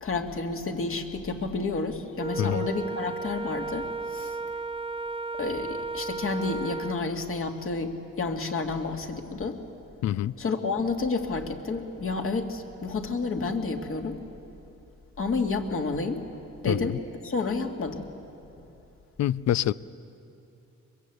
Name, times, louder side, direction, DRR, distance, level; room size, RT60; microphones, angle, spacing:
voice 1, 0.0-4.4 5.4-9.6 10.4-14.2 15.2-16.2 16.6-17.0 17.2-18.1, left 3 dB, 45° left, 4 dB, 2.3 m, -30 dB
Wind instrument woodwind instrument, 2.2-7.1, right 3 dB, 15° right, 0.6 m, -34 dB
voice 2, 10.0-10.3 16.7-17.0 19.2-19.7, left 12 dB, 65° left, 19 dB, 0.6 m, -26 dB
22.5 x 22.0 x 8.3 m, 2.8 s
cardioid pair, 90°, 30 cm